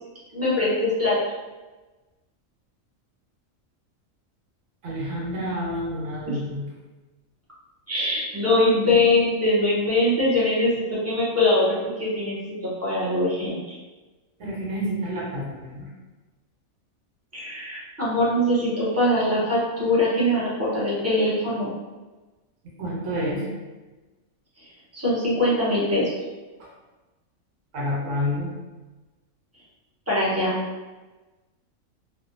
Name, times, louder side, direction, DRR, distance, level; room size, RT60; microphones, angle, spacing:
voice 1, 0.3-1.2 6.3-6.4 7.9-13.8 17.3-21.7 24.6-24.7 24.9-26.1 30.1-30.6, left 1 dB, 20° right, -8 dB, 0.4 m, -22 dB
voice 2, 4.8-6.6 8.9-9.0 14.4-15.9 22.8-23.5 26.6-26.7 27.7-28.5, equal, 70° right, -4 dB, 1.0 m, -29 dB
2.6 x 2.1 x 2.5 m, 1.2 s
omnidirectional pair, 1.4 m